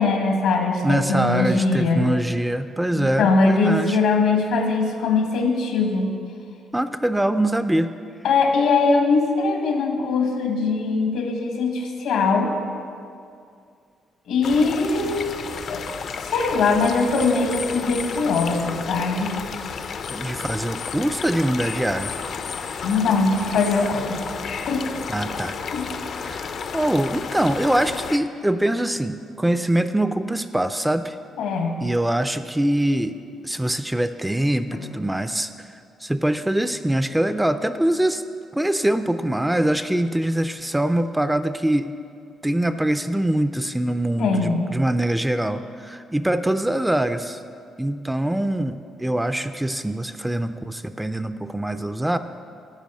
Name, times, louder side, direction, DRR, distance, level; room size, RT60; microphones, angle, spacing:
voice 1, 0.0-2.1 2.9-6.1 8.2-12.5 14.3-15.2 15.7-15.8 16.2-19.3 22.8-24.2 24.7-24.9 25.7-25.9 31.4-31.7 34.8-34.9 44.2-44.6, left 4 dB, 85° left, 3 dB, 1.4 m, -21 dB
voice 2, 0.8-4.0 6.7-7.9 20.1-22.1 25.1-25.6 26.1-31.2 31.8-33.1 33.4-35.7 36.0-38.2 38.5-41.9 42.4-47.4 47.8-52.2, right 1 dB, 10° right, 10 dB, 0.4 m, -23 dB
sound 1, 14.4-28.2, left 6 dB, 60° left, 0.5 m, -32 dB
10.5 x 4.8 x 7.5 m, 2.3 s
cardioid pair, 90°, 0 cm